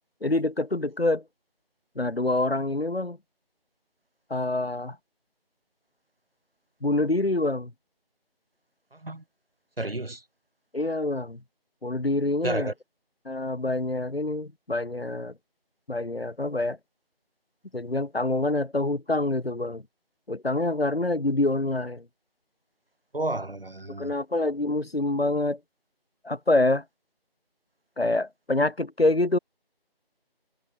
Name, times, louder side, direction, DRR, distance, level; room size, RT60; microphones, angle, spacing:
voice 1, 0.2-1.2 2.0-3.2 4.3-5.0 6.8-7.7 10.7-11.4 11.8-12.7 13.3-15.3 15.9-16.8 17.7-19.8 20.3-22.0 23.9-25.6 26.2-26.8 28.0-29.4, left 2 dB, 75° left, 3.5 m, -26 dB
voice 2, 8.9-9.2 9.8-10.2 12.4-12.7 23.1-24.1, right 2 dB, 70° right, 6.2 m, -31 dB
figure-of-eight pair, 175°, 30 cm